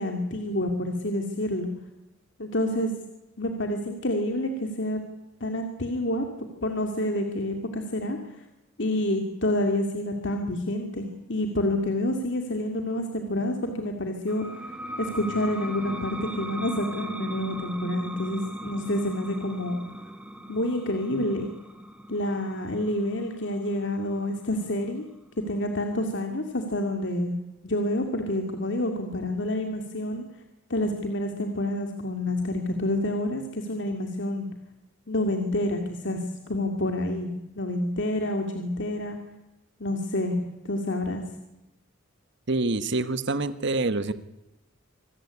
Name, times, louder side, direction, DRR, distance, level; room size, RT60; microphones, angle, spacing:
voice 1, 0.0-1.7 2.4-2.9 3.4-5.0 5.4-6.3 6.6-8.2 8.8-14.6 15.0-19.8 20.5-21.5 22.1-25.0 25.5-27.4 27.6-30.2 30.7-34.5 35.1-36.2 36.5-39.2 39.8-40.4 40.7-41.2, left 1 dB, 60° left, 4 dB, 2.3 m, -28 dB
sound 1, 14.3-25.5, right 1 dB, 5° right, 2.2 m, -38 dB
voice 2, 42.5-44.1, right 3 dB, 60° right, 13 dB, 1.3 m, -26 dB
25.5 x 14.5 x 9.9 m, 0.97 s
head